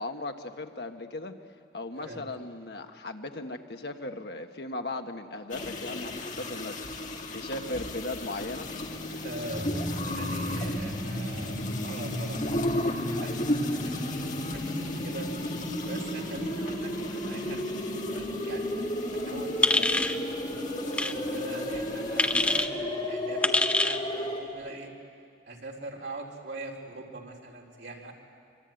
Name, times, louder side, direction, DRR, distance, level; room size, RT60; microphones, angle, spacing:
voice 1, 0.0-1.3 1.7-6.8 7.3-8.7, left 2 dB, 75° left, 5 dB, 1.5 m, -37 dB
sound 1, 5.5-22.7, left 1 dB, 45° left, 2.3 m, -36 dB
voice 2, 9.2-15.3 15.8-24.9 25.5-28.1, right 2 dB, 85° right, -1 dB, 4.0 m, -43 dB
sound 2, 9.5-24.4, equal, 30° left, 5.0 m, -34 dB
sound 3, 19.6-20.2 20.9-21.1 22.2-22.7 23.4-24.0, left 2 dB, 5° left, 0.7 m, -24 dB
25.0 x 24.0 x 9.2 m, 2.4 s
head